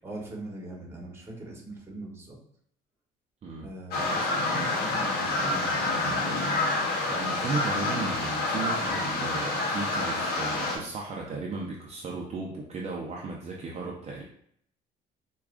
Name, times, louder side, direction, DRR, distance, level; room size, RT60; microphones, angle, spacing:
voice 1, 0.0-2.4 3.6-6.4, right 1 dB, 15° right, -2 dB, 1.1 m, -41 dB
sound 1, 3.9-10.8, left 2 dB, 75° left, 0.9 m, -28 dB
voice 2, 7.1-14.2, right 3 dB, 40° right, -2 dB, 0.5 m, -35 dB
4.6 x 2.3 x 2.4 m, 0.66 s
cardioid pair, 110°, 17 cm